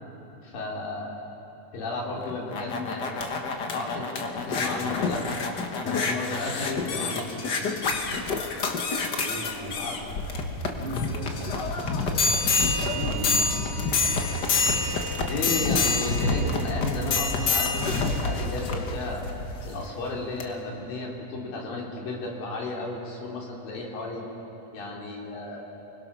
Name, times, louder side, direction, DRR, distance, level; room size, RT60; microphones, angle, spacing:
voice 1, 0.4-1.1 1.7-3.3 3.7-5.2 5.8-7.3 7.5-7.6 9.5-9.9 13.1-13.4 15.2-19.2 19.6-24.2 24.7-25.6, left 2 dB, 90° left, -2 dB, 4.7 m, -33 dB
sound 1, 2.2-19.8 20.4-20.5, left 3 dB, 70° left, 1.0 m, -27 dB
voice 2, 9.2-10.2 10.6-11.5 12.7-14.2, right 2 dB, 15° right, -5 dB, 3.7 m, -39 dB
29.0 x 21.0 x 6.1 m, 2.9 s
omnidirectional pair, 3.9 m